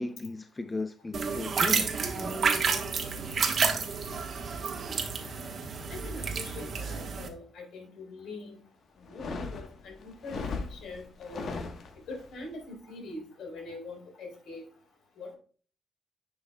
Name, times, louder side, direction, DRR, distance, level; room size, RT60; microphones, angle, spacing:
voice 1, 0.0-2.5, left 2 dB, 20° left, 9 dB, 0.5 m, -36 dB
sound 1, 1.1-7.3, right 5 dB, 50° right, 1.4 m, -30 dB
voice 2, 5.9-8.6 9.0-10.4 10.7-11.6 12.1-14.6 15.2-15.3, left 2 dB, 75° left, 0 dB, 4.0 m, -43 dB
sound 2, 9.0-12.3, left 4 dB, 60° left, 1.2 m, -38 dB
10.5 x 5.6 x 2.3 m, 0.39 s
cardioid pair, 90°, 0 cm